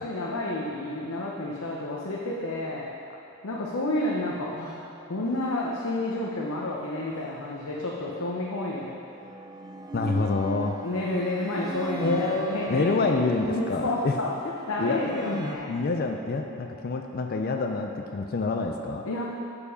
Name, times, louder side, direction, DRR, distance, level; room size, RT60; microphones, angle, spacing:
voice 1, 0.0-2.9 3.4-8.9 10.8-14.3 14.7-15.8 19.0-19.2, left 2 dB, 70° left, -4 dB, 0.8 m, -30 dB
sound 1, 7.2-8.2 9.0-15.6, right 3 dB, 15° right, 0.4 m, -40 dB
voice 2, 9.9-10.8 12.0-14.2 14.4-14.5 14.8-19.1, left 3 dB, 45° left, 4 dB, 0.4 m, -27 dB
7.0 x 6.9 x 5.1 m, 2.7 s
head